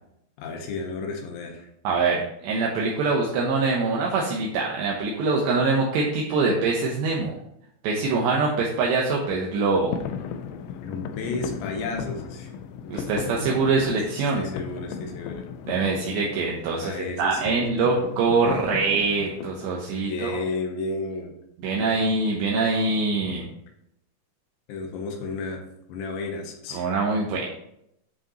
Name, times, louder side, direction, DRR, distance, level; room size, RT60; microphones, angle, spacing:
voice 1, 0.4-1.7 6.5-6.6 10.8-12.5 12.8-13.0 14.3-15.4 16.8-17.6 20.1-21.3 24.7-25.6 25.9-26.9, left 3 dB, 75° left, 3 dB, 3.1 m, -32 dB
voice 2, 1.8-7.3 7.8-9.9 12.9-14.5 15.7-20.4 21.6-23.5 26.7-27.5, right 3 dB, 80° right, -2 dB, 2.5 m, -24 dB
sound 1, 9.8-19.7, left 7 dB, 90° left, 2.6 m, -36 dB
11.0 x 5.0 x 3.0 m, 0.78 s
omnidirectional pair, 6.0 m